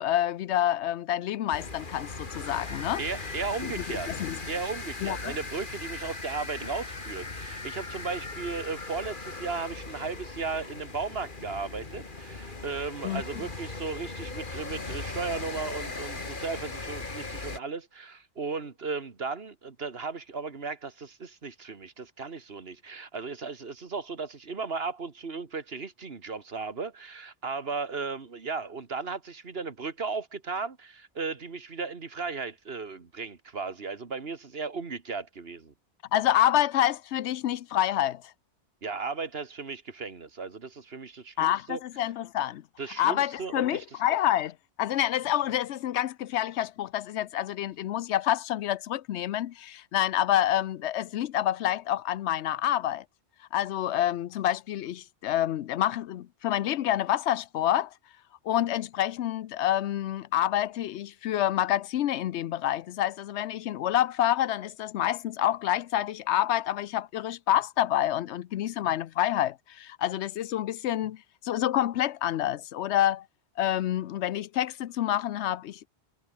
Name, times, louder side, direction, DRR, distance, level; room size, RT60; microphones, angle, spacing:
voice 1, 0.0-3.0 3.6-3.7 4.1-4.4 5.0-5.4 13.0-13.2 36.1-38.3 41.4-42.6 43.0-53.0 53.5-57.9 58.5-73.2 73.6-75.9, left 12 dB, 85° left, 0.9 m, -28 dB
sound 1, 1.5-17.6, left 3 dB, 45° left, 2.6 m, -38 dB
voice 2, 3.0-4.1 4.5-35.7 38.8-41.8 42.8-43.9, right 4 dB, 60° right, 2.0 m, -35 dB
omnidirectional pair, 1.1 m